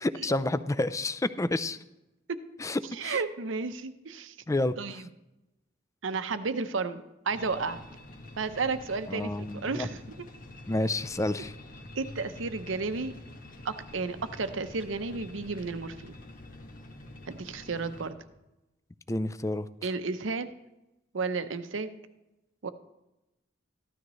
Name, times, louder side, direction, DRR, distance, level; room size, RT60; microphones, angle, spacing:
voice 1, 0.0-1.8 2.6-3.2 4.5-4.8 9.1-9.9 10.7-11.5 19.1-19.7, left 2 dB, 15° left, 14 dB, 0.4 m, -29 dB
voice 2, 2.9-4.3 4.8-5.0 6.0-7.8 8.4-10.3 12.0-13.1 13.6-16.2 17.3-18.1 19.8-20.5 21.1-21.9 22.6-22.7, right 4 dB, 90° right, 11 dB, 0.8 m, -32 dB
sound 1, 7.3-18.1, left 1 dB, 45° left, 1.4 m, -47 dB
14.5 x 12.5 x 3.1 m, 0.96 s
head